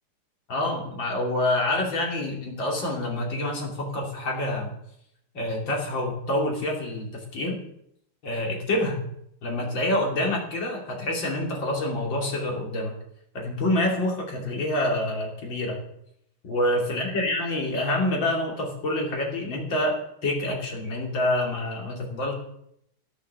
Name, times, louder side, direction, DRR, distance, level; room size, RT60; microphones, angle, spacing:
voice 1, 0.5-4.7 5.3-7.6 8.2-9.0 9.4-12.9 13.3-15.8 16.4-22.3, left 1 dB, 70° left, -1 dB, 3.5 m, -27 dB
12.0 x 8.4 x 6.8 m, 0.73 s
omnidirectional pair, 2.2 m